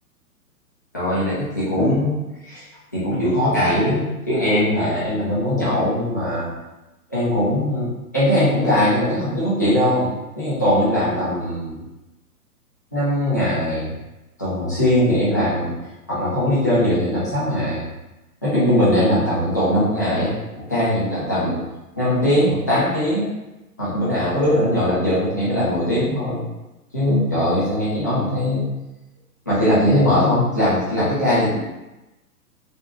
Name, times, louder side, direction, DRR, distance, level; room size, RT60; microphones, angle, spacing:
voice 1, 0.9-2.7 2.9-6.5 7.1-11.8 12.9-13.9 14.4-15.7 16.1-17.8 18.4-20.3 20.7-21.6 22.0-23.3 23.8-26.4 26.9-28.7 29.5-31.6, left 1 dB, 15° left, -11 dB, 0.4 m, -20 dB
3.4 x 2.7 x 3.3 m, 1.0 s
figure-of-eight pair, 120°, 46 cm